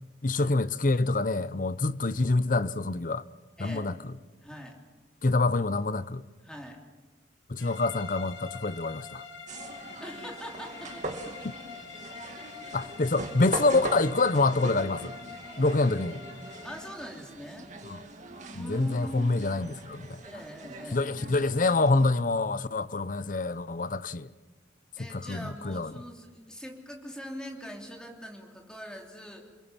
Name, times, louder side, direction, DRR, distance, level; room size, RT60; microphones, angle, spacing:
voice 1, 0.2-3.2 3.6-3.9 5.2-6.2 7.5-9.2 12.7-15.1 15.6-16.2 17.8-18.0 18.6-20.2 20.9-24.3 25.1-25.9, left 3 dB, 45° left, 0.7 m, -26 dB
voice 2, 3.6-3.9 4.4-4.8 6.4-6.8 10.0-11.3 12.4-12.8 16.6-17.7 18.5-19.3 20.2-21.3 25.0-29.4, equal, 5° left, 3.3 m, -43 dB
sound 1, 7.6-17.0, left 6 dB, 85° left, 2.2 m, -45 dB
sound 2, 9.5-22.1, right 2 dB, 40° right, 2.2 m, -41 dB
28.0 x 22.0 x 7.4 m
head